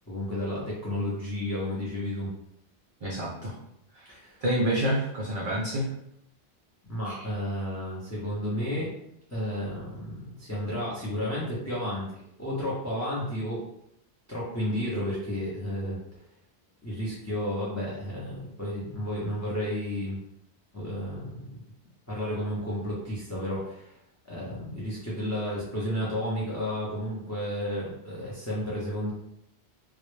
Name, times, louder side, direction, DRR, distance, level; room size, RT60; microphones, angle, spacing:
voice 1, 0.1-2.3 4.1-4.4 6.9-8.9 9.3-12.1 12.4-13.6 14.3-16.0 16.8-20.2 20.7-21.6 22.1-24.0 24.3-29.1, equal, 25° left, -6 dB, 0.4 m, -32 dB
voice 2, 3.0-3.6 3.9-4.2 4.4-5.9 7.1-7.2, right 1 dB, 55° right, -5 dB, 0.4 m, -28 dB
2.1 x 2.0 x 3.0 m, 0.76 s
omnidirectional pair, 1.1 m